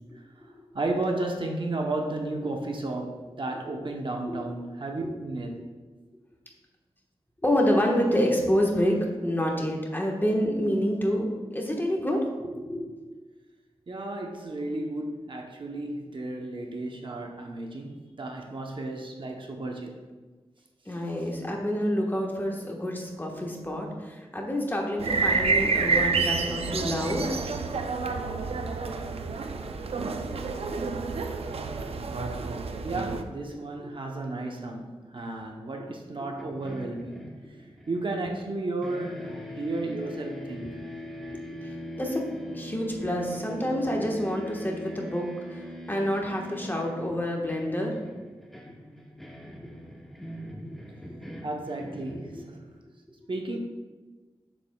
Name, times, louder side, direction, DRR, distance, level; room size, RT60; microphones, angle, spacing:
voice 1, 0.7-5.6 13.9-20.0 32.8-37.3 37.9-40.8 51.4-52.6 53.3-53.6, right 2 dB, 55° right, 2 dB, 0.8 m, -33 dB
voice 2, 7.4-12.9 20.9-27.3 31.8-31.9 33.8-33.9 40.6-40.7 41.3-48.0 50.6-50.8, equal, 20° left, -1 dB, 1.3 m, -28 dB
sound 1, 25.0-33.2, right 4 dB, 75° right, 0.5 m, -28 dB
sound 2, 36.4-38.6 38.8-52.8, left 1 dB, ahead, 0.9 m, -42 dB
7.2 x 7.1 x 2.3 m, 1.3 s
wide cardioid pair, 65°, 10 cm